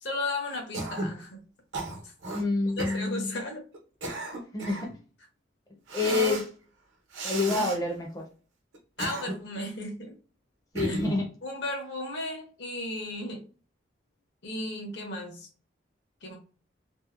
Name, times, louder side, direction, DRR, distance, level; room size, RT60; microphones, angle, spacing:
voice 1, 0.0-1.4 2.0-2.1 2.8-3.6 4.6-4.7 9.0-10.1 10.9-11.0 11.4-13.4 14.4-15.5 16.2-16.4, left 2 dB, 70° left, 2 dB, 0.8 m, -35 dB
Cough, 0.7-1.2 1.7-2.4 2.8-3.0 3.7-4.9 5.9-6.5 7.1-7.8 8.7-9.6 10.8-11.2, right 2 dB, 80° right, 0.8 m, -33 dB
voice 2, 2.3-3.3 4.5-4.9 5.9-6.5 7.2-8.2 10.7-11.3, left 3 dB, 20° left, 1 dB, 0.4 m, -28 dB
2.7 x 2.0 x 2.4 m, 0.38 s
head